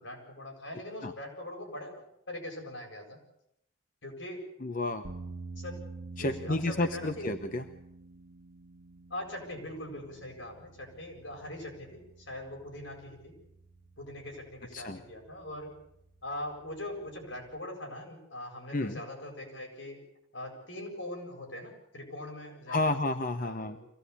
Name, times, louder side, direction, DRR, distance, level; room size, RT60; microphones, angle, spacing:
voice 1, 0.0-3.2 4.0-4.5 5.6-5.8 6.2-7.3 9.1-13.4 14.0-15.7 16.2-20.0 20.3-23.0 23.4-23.9, left 1 dB, 80° left, 2 dB, 7.9 m, -42 dB
voice 2, 4.6-5.1 6.2-7.6 14.7-15.0 18.7-19.0 22.7-23.8, left 2 dB, 45° left, 7 dB, 1.0 m, -31 dB
sound 1, 5.0-17.6, right 3 dB, 75° right, 1.6 m, -49 dB
24.5 x 17.5 x 8.5 m, 0.80 s
head